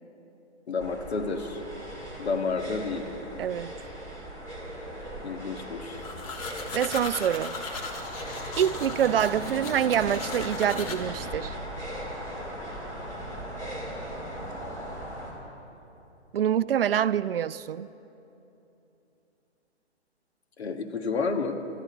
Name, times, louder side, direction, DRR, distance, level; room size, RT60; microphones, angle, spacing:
voice 1, 0.7-1.6 2.2-3.1 5.2-6.0 20.6-21.6, left 4 dB, 65° left, 6 dB, 1.4 m, -30 dB
sound 1, 0.8-15.3, equal, 10° left, 2.1 m, -38 dB
voice 2, 3.4-3.7 6.7-7.6 8.6-11.5 16.3-17.9, right 9 dB, 55° right, 16 dB, 0.5 m, -26 dB
sound 2, 6.0-11.0, left 4 dB, 30° left, 1.4 m, -38 dB
19.5 x 13.0 x 5.1 m, 3.0 s
hypercardioid pair, 145°, 35 cm